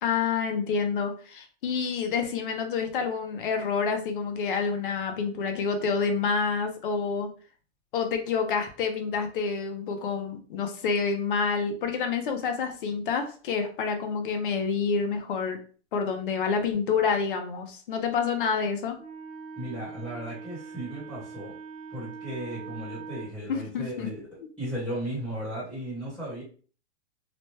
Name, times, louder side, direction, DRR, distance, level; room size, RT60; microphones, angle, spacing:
voice 1, 0.0-7.3 7.9-15.6 15.9-19.0 23.5-24.1, left 5 dB, 50° left, 5 dB, 0.7 m, -28 dB
Wind instrument woodwind instrument, 19.0-23.3, right 5 dB, 40° right, 1.1 m, -42 dB
voice 2, 19.6-21.5 21.9-24.2 24.6-26.4, right 1 dB, 5° left, -10 dB, 1.0 m, -35 dB
3.0 x 2.1 x 3.1 m, 0.41 s
hypercardioid pair, 160°, 35 cm